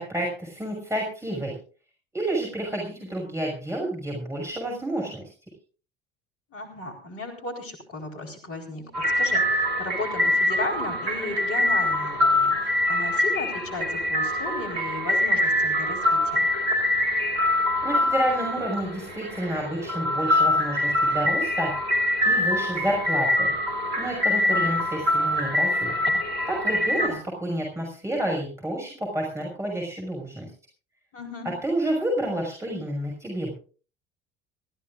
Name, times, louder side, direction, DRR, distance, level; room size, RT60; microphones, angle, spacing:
voice 1, 0.0-1.5 2.1-5.2 17.8-21.7 22.2-23.5 24.0-26.0 26.5-30.5 31.6-33.5, right 1 dB, 10° right, -1 dB, 6.3 m, -29 dB
voice 2, 6.5-16.5 24.3-24.6 26.8-27.2 31.1-31.5, left 2 dB, 45° left, 4 dB, 4.5 m, -35 dB
sound 1, 8.9-27.1, left 1 dB, 75° right, 2.9 m, -24 dB
25.5 x 15.5 x 2.5 m, 0.38 s
figure-of-eight pair, 60°, 30 cm